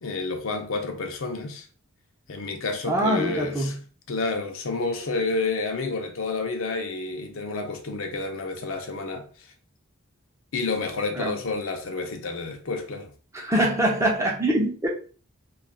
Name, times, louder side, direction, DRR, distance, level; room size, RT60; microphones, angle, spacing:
voice 1, 0.0-1.6 2.3-3.7 4.1-9.3 10.5-13.1, left 3 dB, 65° left, 0.6 m, -29 dB
voice 2, 2.9-3.8 11.1-11.4 13.3-14.9, right 1 dB, 15° right, 0.5 m, -24 dB
2.3 x 2.3 x 3.5 m
head